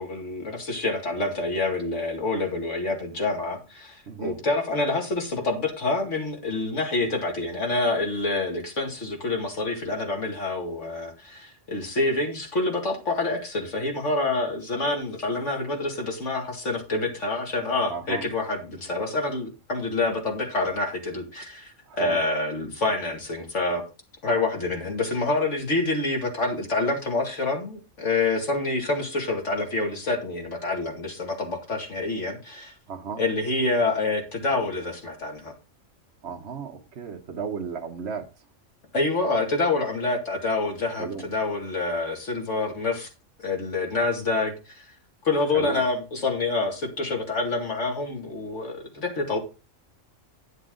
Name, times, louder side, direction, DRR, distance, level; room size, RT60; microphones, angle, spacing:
voice 1, 0.0-23.8 24.2-32.7 33.2-35.5 38.9-43.1 43.4-44.8 45.2-49.4, left 2 dB, 65° left, 2.6 m, -27 dB
voice 2, 4.1-4.4 17.9-18.3 21.9-22.2 32.9-33.2 36.2-38.3 40.9-41.2 45.5-45.8, right 6 dB, 60° right, 1.3 m, -34 dB
9.6 x 8.3 x 3.8 m
omnidirectional pair, 1.4 m